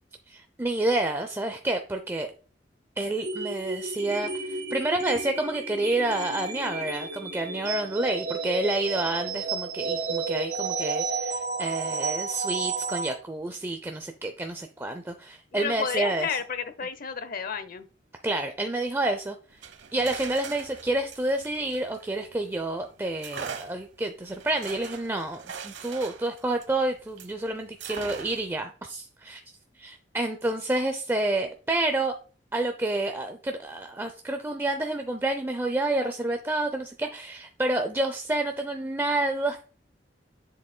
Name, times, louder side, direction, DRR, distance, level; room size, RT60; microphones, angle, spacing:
voice 1, 0.3-2.3 3.0-16.4 18.2-19.4 19.9-29.4 29.8-32.1 32.5-39.6, right 2 dB, 15° right, 0.5 m, -29 dB
sound 1, 3.2-13.1, right 4 dB, 65° right, 1.7 m, -32 dB
voice 2, 15.5-17.9, left 5 dB, 55° left, 0.7 m, -31 dB
sound 2, 19.5-22.6 23.2-27.4 27.8-28.6, right 6 dB, 85° right, 0.8 m, -41 dB
7.7 x 6.8 x 2.2 m
head